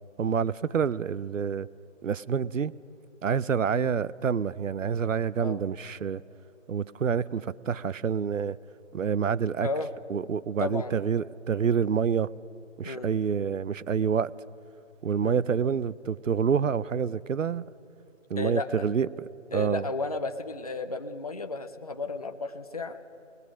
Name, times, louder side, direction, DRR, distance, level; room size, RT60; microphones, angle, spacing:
voice 1, 0.2-1.7 2.0-2.7 3.2-6.2 6.7-8.6 8.9-9.7 10.1-12.3 12.8-14.3 15.0-17.6 18.3-19.8, right 7 dB, 80° right, 19 dB, 0.7 m, -27 dB
voice 2, 10.6-11.0 12.8-13.1 15.2-15.4 18.4-18.9 19.5-23.0, left 3 dB, 30° left, 7 dB, 0.6 m, -33 dB
29.5 x 20.0 x 6.3 m, 2.6 s
hypercardioid pair, 170°, 38 cm